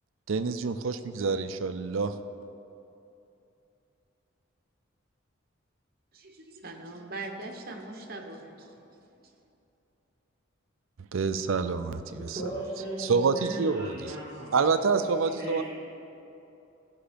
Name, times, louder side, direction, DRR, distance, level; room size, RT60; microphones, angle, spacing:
voice 1, 0.3-2.1 11.1-12.4 13.0-13.9 14.5-15.6, right 5 dB, 75° right, 10 dB, 0.5 m, -27 dB
voice 2, 6.1-9.0, right 2 dB, 45° right, 2 dB, 1.0 m, -41 dB
voice 3, 12.1-14.7 15.0-15.6, right 1 dB, 15° right, -10 dB, 2.3 m, -37 dB
13.5 x 5.6 x 5.1 m, 2.8 s
head